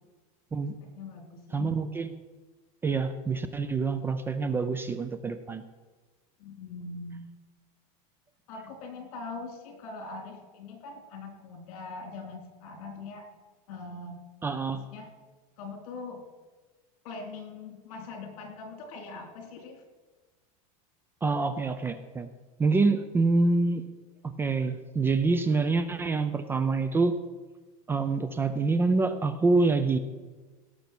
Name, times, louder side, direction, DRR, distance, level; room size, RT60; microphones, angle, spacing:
voice 1, 0.8-1.8 6.4-7.3 8.5-13.3 13.7-14.2 14.7-15.1 15.6-16.2 17.0-19.8, left 3 dB, 70° left, 4 dB, 3.3 m, -42 dB
voice 2, 1.5-2.1 2.8-5.6 14.4-14.8 21.2-22.3 22.6-23.8 24.4-27.1 27.9-30.0, right 3 dB, 10° right, 11 dB, 0.4 m, -26 dB
17.0 x 6.9 x 6.0 m, 1.3 s
supercardioid pair, 160°, 19 cm